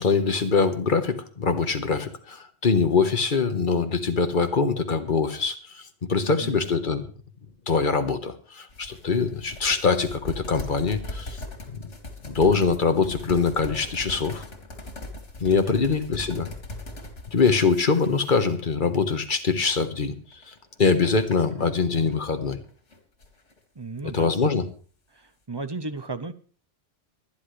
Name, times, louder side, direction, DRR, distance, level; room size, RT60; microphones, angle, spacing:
voice 1, 0.0-7.0 7.7-11.4 11.8-11.9 12.2-14.4 15.4-16.5 17.3-20.2 20.5-22.6 24.0-24.6, left 4 dB, 45° left, 8 dB, 1.3 m, -23 dB
sound 1, 8.7-19.0 19.4-19.7 20.3-22.2 22.5-23.6, left 1 dB, 80° left, 2.7 m, -40 dB
voice 2, 23.8-24.3 25.1-26.3, right 3 dB, 25° right, 11 dB, 0.7 m, -35 dB
24.5 x 10.0 x 3.2 m, 0.40 s
omnidirectional pair, 1.2 m